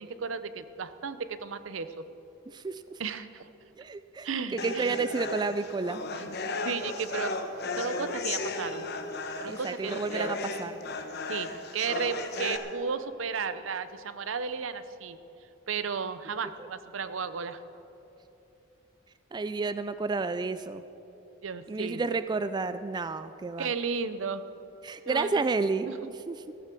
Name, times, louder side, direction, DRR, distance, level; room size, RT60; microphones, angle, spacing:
voice 1, 0.0-2.0 3.0-3.5 4.2-5.0 6.1-6.2 6.6-7.3 7.8-8.9 9.4-10.4 11.3-15.2 15.7-17.6 21.4-22.0 23.6-24.4 25.1-25.4 25.9-26.0, right 5 dB, 80° right, 12 dB, 0.6 m, -34 dB
voice 2, 2.5-2.8 3.8-6.0 9.5-10.7 16.6-16.7 19.3-20.8 21.7-23.7 24.8-25.9 26.3-26.5, right 4 dB, 20° right, 12 dB, 0.3 m, -31 dB
sound 1, 4.6-12.6, left 3 dB, 55° left, 1.0 m, -35 dB
15.0 x 14.5 x 4.5 m, 3.0 s
head